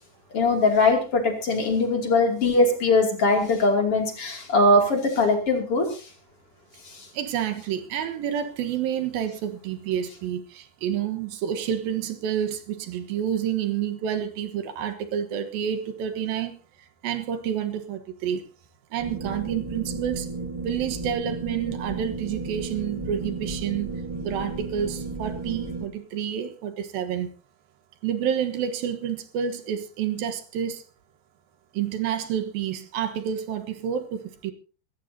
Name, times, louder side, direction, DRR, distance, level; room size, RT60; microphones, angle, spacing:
voice 1, 0.3-6.1 6.8-7.1, left 2 dB, 40° left, 3.3 m, -21 dB
voice 2, 7.1-16.5 17.0-18.4 18.9-20.3 20.6-23.9 24.2-27.3 28.0-30.8 31.7-34.5, right 9 dB, 80° right, 3.1 m, -29 dB
sound 1, 19.0-25.9, right 3 dB, 10° right, 1.6 m, -33 dB
25.5 x 13.0 x 2.8 m
omnidirectional pair, 4.2 m